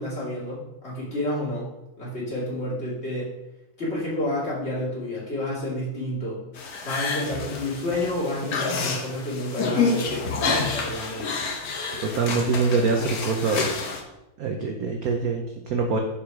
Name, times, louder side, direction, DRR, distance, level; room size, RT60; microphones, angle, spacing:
voice 1, 0.0-1.7 2.0-3.3 3.8-6.4 6.8-11.3, left 1 dB, 30° left, -7 dB, 2.8 m, -30 dB
sound 1, 6.5-14.0, left 4 dB, 55° left, 1.3 m, -28 dB
voice 2, 12.0-13.9 14.4-16.0, right 4 dB, 65° right, 3 dB, 0.9 m, -24 dB
7.0 x 4.8 x 4.8 m, 0.94 s
omnidirectional pair, 2.2 m